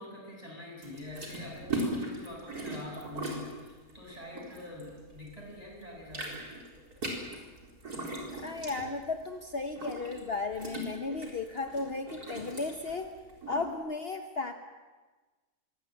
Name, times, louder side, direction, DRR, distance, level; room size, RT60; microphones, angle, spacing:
voice 1, 0.0-6.4, left 1 dB, 25° right, -2 dB, 7.6 m, -45 dB
sound 1, 0.8-5.3 5.7-13.7, right 1 dB, 80° right, 4.8 m, -39 dB
voice 2, 8.3-13.1 13.5-14.5, left 3 dB, 45° left, 5 dB, 1.3 m, -35 dB
24.0 x 17.5 x 9.2 m, 1.3 s
omnidirectional pair, 1.6 m